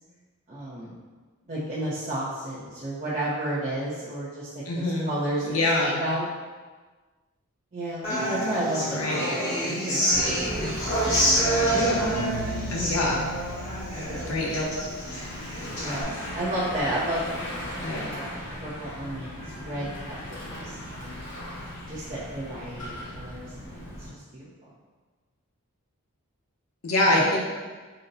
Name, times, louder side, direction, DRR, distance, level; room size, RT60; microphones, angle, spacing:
voice 1, 0.5-0.9 1.5-6.3 7.7-10.8 11.6-12.2 12.8-12.9 13.9-14.5 15.7-17.2 17.5-21.2 21.9-24.4 27.1-27.2, right 1 dB, 35° right, -9 dB, 0.6 m, -33 dB
voice 2, 4.7-5.1 5.5-6.0 8.8-9.2 12.7-13.3 14.1-14.7 15.1-15.3 17.8-18.1 26.8-27.4, left 1 dB, 70° left, -3 dB, 0.8 m, -25 dB
Human voice / Acoustic guitar, 8.0-16.0, equal, 30° left, 1.1 m, -27 dB
Bicycle / Mechanisms, 10.1-24.1, equal, 55° left, 1.4 m, -37 dB
3.9 x 2.2 x 3.9 m, 1.4 s
head